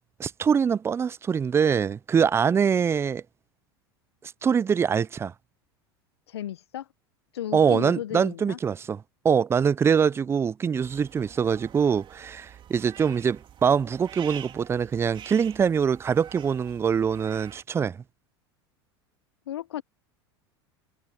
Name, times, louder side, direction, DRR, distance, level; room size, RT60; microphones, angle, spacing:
voice 1, 0.2-3.2 4.4-5.3 7.5-18.0, right 7 dB, 20° right, 0.4 m, -24 dB
voice 2, 6.3-6.9 7.3-8.6 19.5-19.8, left 11 dB, 85° left, 0.9 m, -34 dB
sound 1, 10.8-17.6, right 10 dB, 40° right, 2.6 m, -46 dB
hypercardioid pair, 90°, 13 cm